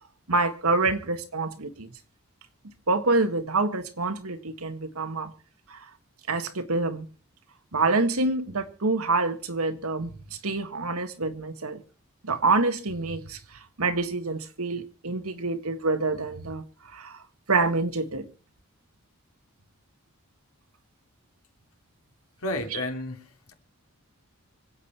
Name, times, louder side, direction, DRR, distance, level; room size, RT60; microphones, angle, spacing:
voice 1, 0.3-1.9 2.9-5.3 5.7-5.8 6.3-7.1 7.7-10.1 10.4-11.8 12.2-17.2 17.5-18.3 22.7-22.8, right 3 dB, 85° right, 1.8 m, -27 dB
voice 2, 22.4-23.5, left 1 dB, 90° left, 3.2 m, -32 dB
26.0 x 8.7 x 4.4 m
head